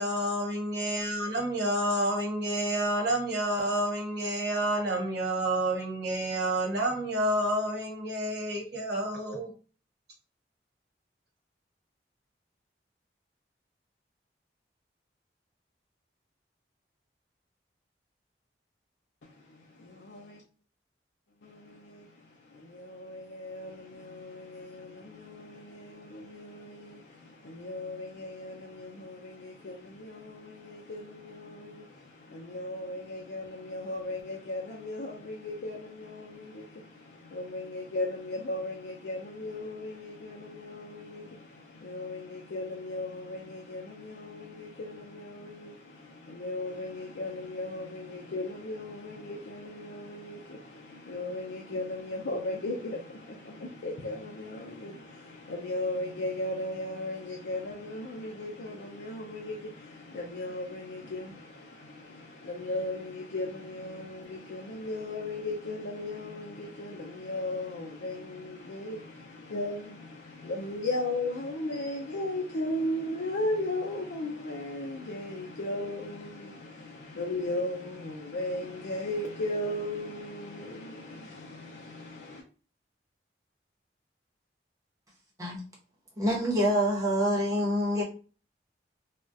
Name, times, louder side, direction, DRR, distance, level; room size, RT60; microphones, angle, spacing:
voice 1, 0.0-9.5, right 1 dB, 70° right, 1.2 m, -29 dB
voice 2, 19.2-20.4 21.4-82.4, left 1 dB, 90° left, 0.5 m, -37 dB
voice 3, 86.2-88.0, equal, 20° right, 0.9 m, -26 dB
3.4 x 2.3 x 2.6 m
head